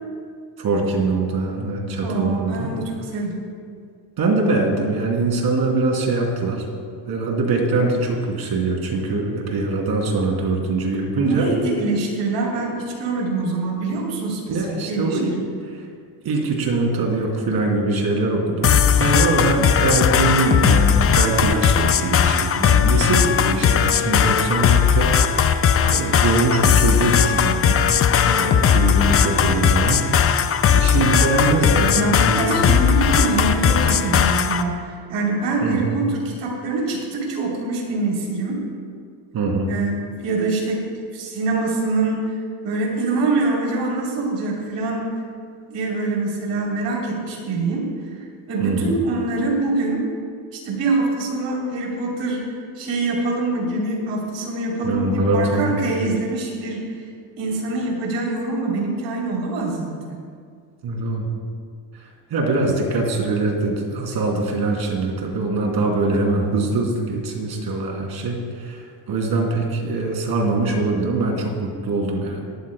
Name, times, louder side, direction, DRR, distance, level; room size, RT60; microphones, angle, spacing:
voice 1, 0.6-2.7 4.2-6.7 7.1-11.5 14.5-15.4 15.6-15.8 16.2-27.9 28.3-30.3 30.7-32.8 35.6-36.0 39.3-39.7 48.6-49.0 54.8-55.8 60.8-61.3 62.3-72.5, right 3 dB, 60° right, 0 dB, 2.9 m, -23 dB
voice 2, 2.0-3.5 11.2-14.6 14.9-15.4 31.9-38.6 39.7-40.8 41.1-42.2 42.6-45.1 45.7-47.9 48.5-50.0 50.5-52.4 52.8-56.9 57.4-59.9, right 3 dB, 85° right, -2 dB, 3.3 m, -24 dB
sound 1, 18.6-34.6, left 7 dB, 35° left, 0.5 m, -18 dB
18.0 x 13.5 x 2.2 m, 2.1 s
cardioid pair, 110°, 42 cm